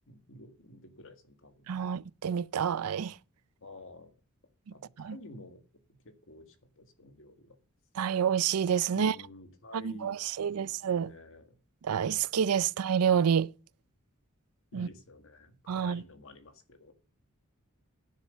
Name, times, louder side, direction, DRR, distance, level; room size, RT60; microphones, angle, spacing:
voice 1, 0.1-1.9 3.6-4.1 4.7-5.6 6.0-7.6 8.9-11.6 14.7-16.9, left 2 dB, 65° left, 1.9 m, -51 dB
voice 2, 1.7-3.2 5.0-5.2 8.0-9.2 9.7-11.1 11.8-13.5 14.7-14.9 15.7-16.0, right 8 dB, 85° right, 0.4 m, -28 dB
10.5 x 7.4 x 6.9 m
head